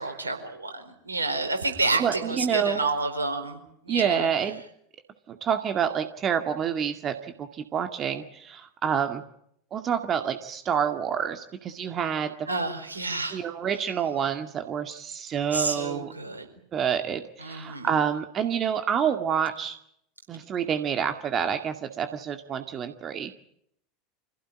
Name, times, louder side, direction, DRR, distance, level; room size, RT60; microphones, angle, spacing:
voice 1, 0.0-4.3 12.5-13.4 15.5-16.4 17.4-17.9, right 3 dB, 85° right, 5 dB, 4.5 m, -29 dB
voice 2, 2.0-2.8 3.9-4.6 5.3-9.2 9.7-12.5 13.3-16.1 16.7-19.8 20.3-23.3, right 8 dB, 35° right, 7 dB, 2.1 m, -28 dB
26.5 x 16.5 x 9.9 m, 0.75 s
figure-of-eight pair, 80°, 0 cm